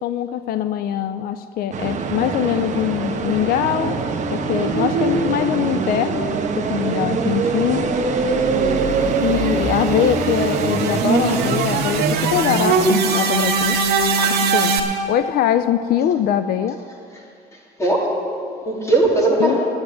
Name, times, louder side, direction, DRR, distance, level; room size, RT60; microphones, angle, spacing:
voice 1, 0.0-4.0 4.3-7.9 9.2-13.8 14.5-14.8 15.1-16.8 19.4-19.7, left 10 dB, 65° left, 12 dB, 0.4 m, -22 dB
sound 1, 1.7-12.9, right 4 dB, 45° right, 1.1 m, -23 dB
voice 2, 8.3-8.9 13.1-13.2 14.1-14.4 17.8-18.2 18.6-19.7, right 2 dB, 15° left, -3 dB, 2.7 m, -20 dB
sound 2, 8.4-14.8, right 4 dB, 80° right, 1.5 m, -21 dB
10.0 x 7.9 x 9.4 m, 2.5 s
cardioid pair, 110°, 17 cm